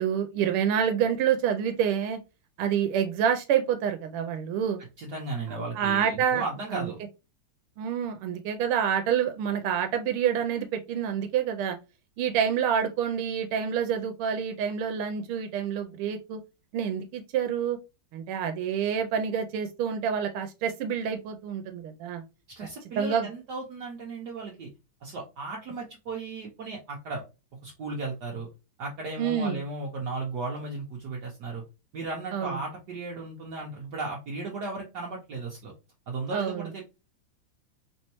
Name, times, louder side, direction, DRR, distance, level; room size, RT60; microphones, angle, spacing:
voice 1, 0.0-2.2 2.6-4.8 5.8-6.4 6.7-6.9 7.8-11.8 12.2-16.4 16.7-17.8 18.1-22.2 23.0-23.3 29.2-29.6 32.3-32.6 36.3-36.7, right 8 dB, 85° right, 5 dB, 1.5 m, -27 dB
voice 2, 5.0-7.0 22.5-24.7 25.0-27.2 27.6-28.5 28.8-31.6 31.9-35.7 36.1-36.8, right 3 dB, 60° right, -1 dB, 1.2 m, -35 dB
4.3 x 3.4 x 2.9 m, 0.28 s
omnidirectional pair, 2.3 m